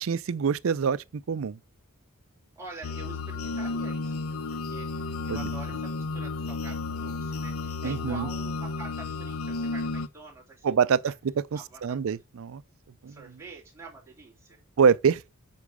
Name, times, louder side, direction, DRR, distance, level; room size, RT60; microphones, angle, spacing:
voice 1, 0.0-1.6 5.3-5.4 7.8-8.3 10.6-12.6 13.0-13.2 14.8-15.3, right 6 dB, 65° right, 0.4 m, -25 dB
voice 2, 2.5-11.1 11.5-12.0 13.0-14.6, right 3 dB, 10° right, 2.9 m, -46 dB
sound 1, 2.8-10.1, left 3 dB, 70° left, 0.6 m, -32 dB
8.3 x 4.8 x 5.0 m
head